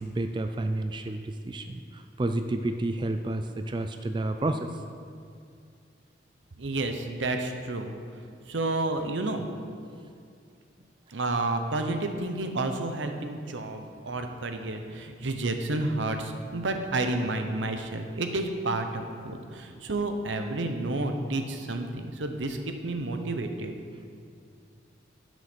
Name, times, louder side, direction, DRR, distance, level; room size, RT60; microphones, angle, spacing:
voice 1, 0.0-4.7, right 2 dB, 25° right, 7 dB, 0.3 m, -30 dB
voice 2, 6.6-7.9 8.5-9.5 11.1-23.8, right 2 dB, 85° right, 6 dB, 0.9 m, -30 dB
12.0 x 6.3 x 5.3 m, 2.3 s
head